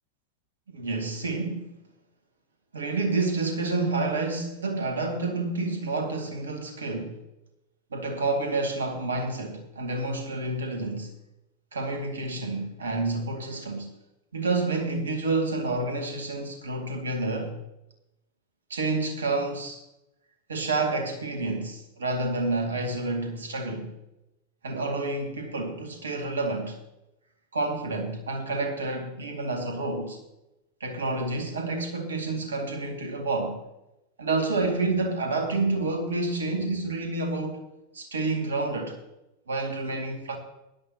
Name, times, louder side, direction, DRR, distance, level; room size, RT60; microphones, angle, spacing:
voice 1, 0.8-1.8 2.7-7.2 7.9-11.1 11.7-13.9 14.3-17.6 18.7-19.8 20.5-23.9 24.6-26.8 27.5-30.2 30.8-33.6 34.2-37.6 37.9-39.0 39.5-40.4, right 3 dB, 70° right, 2.3 m, -29 dB
16.5 x 11.5 x 2.9 m
figure-of-eight pair, 90°, 0 cm